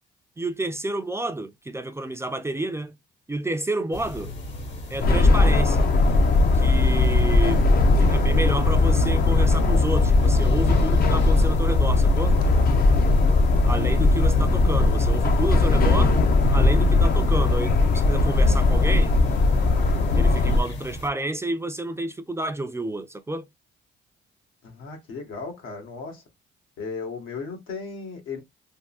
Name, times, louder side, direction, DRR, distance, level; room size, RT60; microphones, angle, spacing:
voice 1, 0.4-2.9 3.3-4.3 4.9-5.9 6.5-7.6 8.0-12.3 13.7-16.2 16.5-19.1 20.1-23.5, right 1 dB, 15° right, 0.5 m, -30 dB
sound 1, 3.9-21.1, left 1 dB, 65° left, 1.3 m, -36 dB
sound 2, 5.0-20.6, left 2 dB, 50° left, 0.6 m, -19 dB
voice 2, 24.6-26.2 26.8-28.4, left 4 dB, 85° left, 1.5 m, -35 dB
3.5 x 2.2 x 2.4 m
cardioid pair, 90°, 20 cm